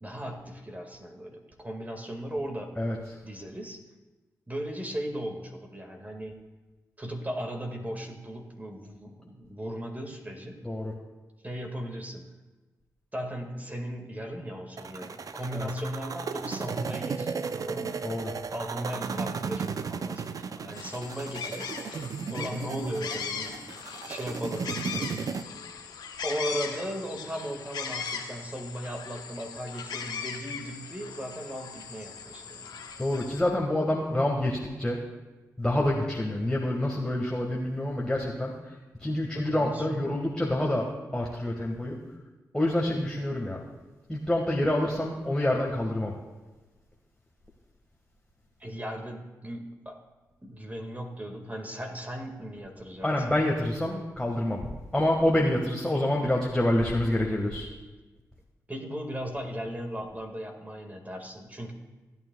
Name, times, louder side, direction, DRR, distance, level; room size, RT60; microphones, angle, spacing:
voice 1, 0.0-2.8 3.2-3.8 4.5-6.4 7.0-10.6 11.4-12.3 13.1-18.1 18.5-21.7 22.3-23.7 24.0-25.2 26.2-32.8 39.3-40.1 48.6-50.0 50.4-53.3 58.7-61.7, equal, 20° right, 3 dB, 1.9 m, -37 dB
sound 1, 14.8-25.4, right 5 dB, 55° right, 0.6 m, -35 dB
sound 2, 20.7-33.4, left 6 dB, 75° left, 1.1 m, -39 dB
voice 2, 33.0-35.0 35.6-38.5 39.0-42.0 42.5-43.6 44.1-46.1 53.0-54.6 54.9-57.7, left 1 dB, 10° left, -2 dB, 1.7 m, -27 dB
16.5 x 9.1 x 2.3 m, 1.2 s
supercardioid pair, 45°, 7 cm